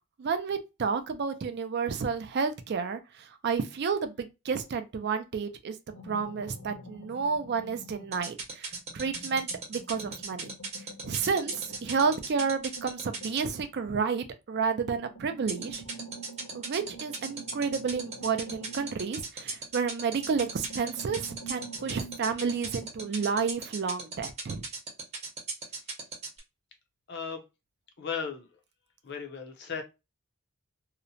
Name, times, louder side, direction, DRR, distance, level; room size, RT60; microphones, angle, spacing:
voice 1, 0.2-5.8 6.0-10.5 11.0-15.8 16.5-24.6, right 5 dB, 45° right, 0.3 m, -31 dB
sound 1, 5.9-8.4 8.7-14.3 14.8-19.8 20.2-23.5, right 2 dB, 70° left, 1.0 m, -48 dB
sound 2, 8.1-13.4 15.5-26.4, right 4 dB, 30° right, 0.7 m, -36 dB
voice 2, 27.1-27.4 28.0-28.5 29.0-29.8, left 6 dB, 50° left, 0.6 m, -35 dB
2.8 x 2.1 x 2.5 m
head